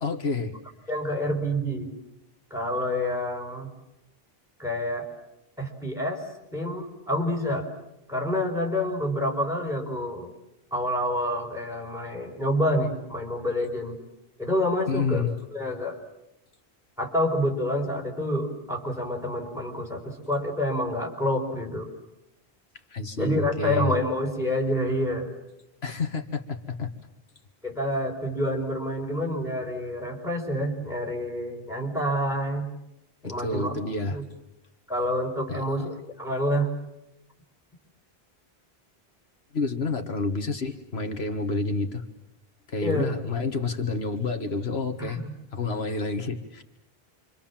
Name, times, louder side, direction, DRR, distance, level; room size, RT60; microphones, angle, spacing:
voice 1, 0.0-0.5 14.9-15.3 22.9-23.9 25.8-26.9 33.2-34.2 35.5-35.9 39.5-42.0 42.7-45.2 45.5-46.6, left 3 dB, 80° left, 6 dB, 1.9 m, -29 dB
voice 2, 0.9-1.9 2.5-3.7 4.6-5.1 5.6-6.2 6.5-7.7 8.1-10.3 10.7-14.0 14.4-15.3 15.5-16.0 17.0-21.9 23.2-25.3 27.6-32.7 33.2-33.8 34.1-34.2 34.9-36.7 42.8-43.1 45.0-45.3, equal, 5° right, 2 dB, 5.2 m, -28 dB
28.0 x 25.5 x 7.4 m, 0.87 s
omnidirectional pair, 1.1 m